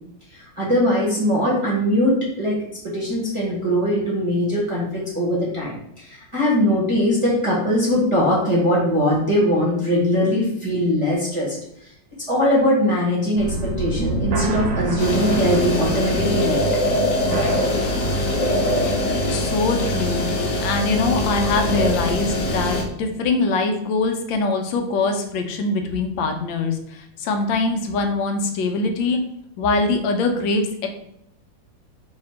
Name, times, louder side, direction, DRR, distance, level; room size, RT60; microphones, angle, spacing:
voice 1, 0.3-2.6 2.9-11.9 12.3-16.6 17.3-17.6, equal, 25° right, -7 dB, 0.7 m, -21 dB
sound 1, 13.4-22.9, right 2 dB, 70° right, 1.0 m, -30 dB
sound 2, 15.0-22.8, left 1 dB, 70° left, 1.2 m, -22 dB
voice 2, 19.3-20.2 20.6-29.2 29.6-30.9, left 3 dB, 90° left, 5 dB, 1.4 m, -23 dB
3.3 x 2.8 x 4.2 m, 0.76 s
omnidirectional pair, 2.0 m